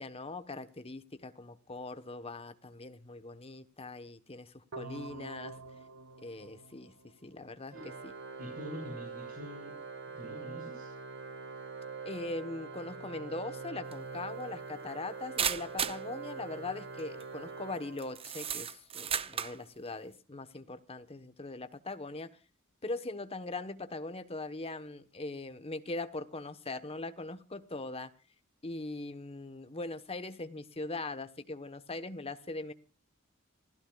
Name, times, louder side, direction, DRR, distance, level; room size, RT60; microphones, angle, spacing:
voice 1, 0.0-5.6 6.2-6.9 7.2-7.8 8.0-8.1 12.0-22.3 22.8-28.1 28.6-32.7, left 2 dB, 30° left, 1.2 m, -41 dB
sound 1, 4.7-7.7, right 2 dB, 75° right, 1.1 m, -48 dB
Organ, 7.7-18.5, right 5 dB, 60° right, 1.8 m, -44 dB
voice 2, 8.4-9.8 10.2-10.9, equal, 45° right, 6.5 m, -44 dB
sound 2, 13.9-14.0 15.4-16.0 17.0-17.2 18.0-19.6, right 7 dB, 25° right, 0.7 m, -34 dB
27.0 x 16.0 x 2.4 m
head